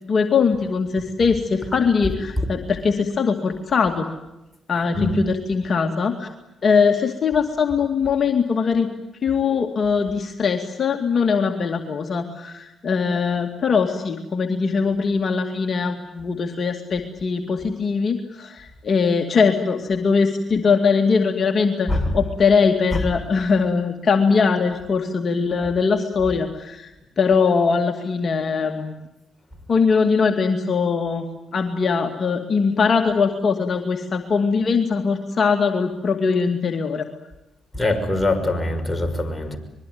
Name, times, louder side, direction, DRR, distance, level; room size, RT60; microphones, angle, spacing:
voice 1, 0.0-4.1 4.7-6.3 6.6-8.9 9.2-26.9 27.2-28.9 29.7-31.3 31.5-37.1, left 5 dB, 50° left, 2.3 m, -21 dB
voice 2, 37.7-39.6, left 2 dB, 15° left, 6.0 m, -23 dB
25.5 x 22.0 x 9.5 m
supercardioid pair, 60°, 0 cm